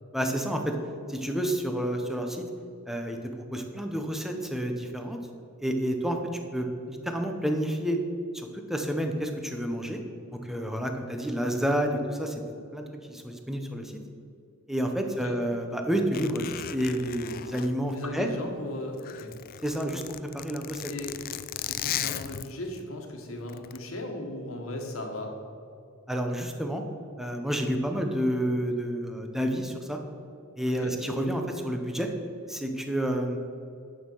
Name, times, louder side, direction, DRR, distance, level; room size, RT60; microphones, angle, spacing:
voice 1, 0.1-0.7 1.1-2.5 2.9-5.2 5.6-6.2 6.5-8.0 8.3-10.0 10.3-12.4 12.7-14.0 14.7-18.3 19.6-20.0 20.3-20.8 26.1-26.8 27.2-30.0 30.6-32.1 32.5-33.4, equal, ahead, 3 dB, 0.8 m, -29 dB
voice 2, 15.1-15.4 17.9-19.3 20.9-21.1 21.7-25.3 30.6-30.9, left 1 dB, 75° left, 2 dB, 1.5 m, -37 dB
Zipper (clothing), 16.1-18.5 18.9-22.8 23.5-23.8, left 11 dB, 45° left, 0.3 m, -36 dB
9.3 x 6.5 x 5.5 m, 2.6 s
head